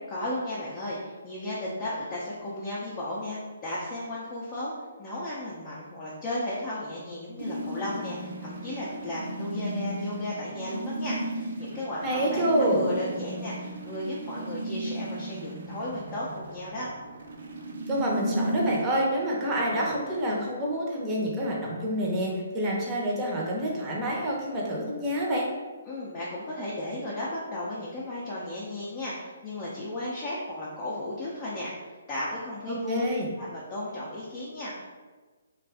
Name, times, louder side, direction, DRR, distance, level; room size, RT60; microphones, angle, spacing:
voice 1, 0.1-4.7 5.0-16.9 25.9-33.0 33.4-35.0, left 1 dB, 25° left, -7 dB, 0.6 m, -35 dB
sound 1, 7.4-18.8, right 1 dB, 65° right, 0.5 m, -34 dB
voice 2, 12.0-12.8 17.9-25.5 32.7-33.3, right 1 dB, 20° right, -3 dB, 0.7 m, -27 dB
2.5 x 2.3 x 3.4 m, 1.3 s
hypercardioid pair, 145°, 0 cm